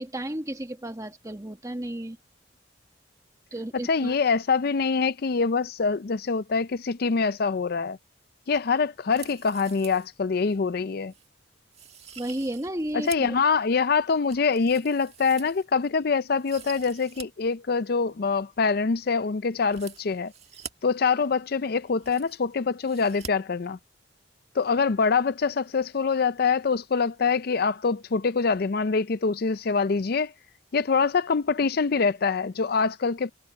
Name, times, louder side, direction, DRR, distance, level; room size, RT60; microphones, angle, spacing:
voice 1, 0.0-2.2 3.5-4.2 12.1-13.1, right 1 dB, 15° right, 1.4 m, -33 dB
voice 2, 3.8-8.0 8.5-11.1 13.1-20.3 20.8-23.8 24.6-30.3 30.7-33.3, left 5 dB, 55° left, 0.5 m, -25 dB
sound 1, 9.0-10.1 10.5-10.6 11.1-11.3 11.7-13.4 13.8-15.9 16.3-17.3 17.5-17.6 19.6-20.7 21.5-21.6 21.8-22.5 22.8-23.3 23.6-23.7, right 8 dB, 35° right, 1.8 m, -45 dB
head